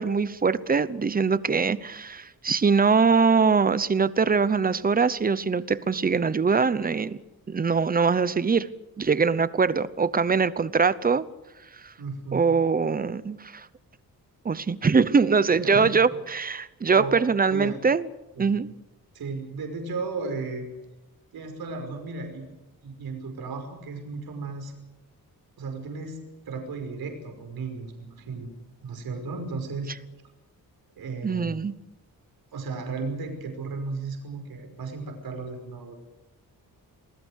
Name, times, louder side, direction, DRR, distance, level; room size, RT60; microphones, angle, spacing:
voice 1, 0.0-7.2 7.5-8.7 9.0-11.3 12.3-13.7 14.4-18.1 18.4-18.7 31.2-31.7, right 5 dB, 25° right, 0.8 m, -22 dB
voice 2, 12.0-12.4 15.6-16.1 16.9-17.2 17.5-17.8 18.4-18.5 19.1-20.7 21.3-22.5 22.8-24.7 25.6-26.2 26.4-28.5 28.8-29.9 31.0-31.5 32.5-36.0, right 4 dB, 80° right, 5.5 m, -34 dB
28.5 x 20.0 x 6.5 m
wide cardioid pair, 165°, 36 cm